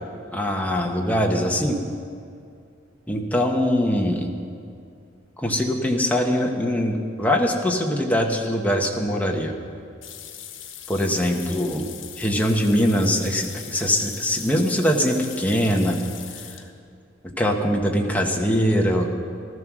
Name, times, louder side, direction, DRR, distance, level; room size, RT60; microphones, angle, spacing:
voice 1, 0.3-1.8 3.1-4.3 5.4-9.5 10.9-11.8 12.2-16.0 17.2-19.1, equal, 10° left, 1 dB, 1.3 m, -22 dB
sound 1, 10.0-16.7, left 9 dB, 80° left, 1.3 m, -40 dB
15.0 x 13.0 x 6.2 m, 2.4 s
head